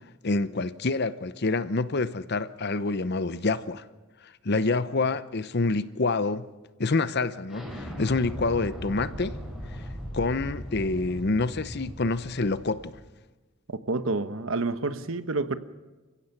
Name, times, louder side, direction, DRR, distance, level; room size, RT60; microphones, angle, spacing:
voice 1, 0.2-3.8 4.4-6.5 6.8-9.4 10.1-12.9, left 3 dB, 50° left, 0.8 m, -27 dB
Explosion, 7.5-13.0, equal, ahead, 5.4 m, -38 dB
voice 2, 13.7-15.6, right 3 dB, 65° right, 1.1 m, -29 dB
29.5 x 16.0 x 5.9 m
head